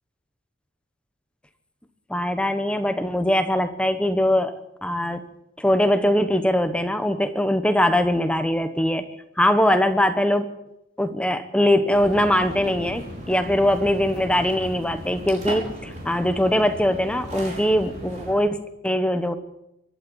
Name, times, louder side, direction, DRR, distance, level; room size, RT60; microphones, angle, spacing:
voice 1, 2.1-4.5 4.8-5.2 5.6-9.0 9.4-10.5 11.0-19.3, left 1 dB, 5° left, 9 dB, 1.1 m, -21 dB
sound 1, 11.9-18.3, equal, 35° right, 5.4 m, -36 dB
24.5 x 12.0 x 9.1 m, 0.87 s
head